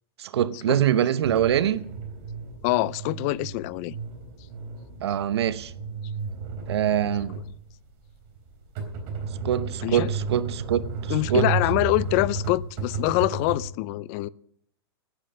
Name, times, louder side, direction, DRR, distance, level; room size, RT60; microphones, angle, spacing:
voice 1, 0.2-1.8 5.0-5.7 6.7-7.4 9.4-11.5, right 10 dB, 85° right, 0.8 m, -24 dB
sound 1, 1.2-13.6, right 4 dB, 40° right, 3.6 m, -33 dB
voice 2, 2.6-3.9 9.8-10.1 11.1-14.3, left 18 dB, 35° left, 0.4 m, -25 dB
9.8 x 8.6 x 9.9 m
hypercardioid pair, 150°, 13 cm